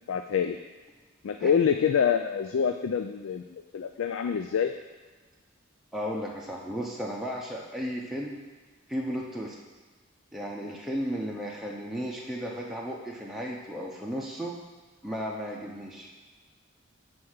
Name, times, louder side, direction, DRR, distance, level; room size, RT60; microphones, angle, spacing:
voice 1, 0.1-0.6 1.2-3.4 3.7-4.7, left 7 dB, 75° left, 6 dB, 0.4 m, -26 dB
voice 2, 5.9-8.4 8.9-9.6 10.3-14.6 15.0-16.1, equal, ahead, -4 dB, 0.7 m, -34 dB
7.7 x 4.3 x 6.4 m, 1.4 s
head